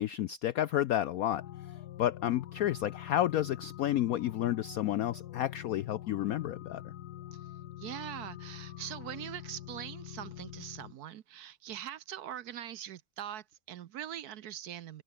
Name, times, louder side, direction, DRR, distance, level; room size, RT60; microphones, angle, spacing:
voice 1, 0.0-1.4 2.0-6.9, left 12 dB, 80° left, 0.7 m, -31 dB
sound 1, 1.3-10.9, left 13 dB, 65° left, 1.1 m, -45 dB
voice 2, 7.8-15.0, right 11 dB, 60° right, 1.1 m, -42 dB
omnidirectional pair, 2.1 m